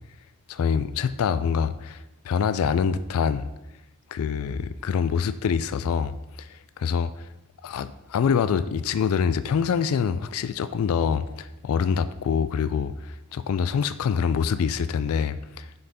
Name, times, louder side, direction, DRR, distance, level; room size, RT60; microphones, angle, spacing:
voice 1, 0.5-3.5 4.1-7.3 7.6-15.7, left 6 dB, 70° left, 13 dB, 0.3 m, -25 dB
6.0 x 5.6 x 5.0 m, 0.96 s
head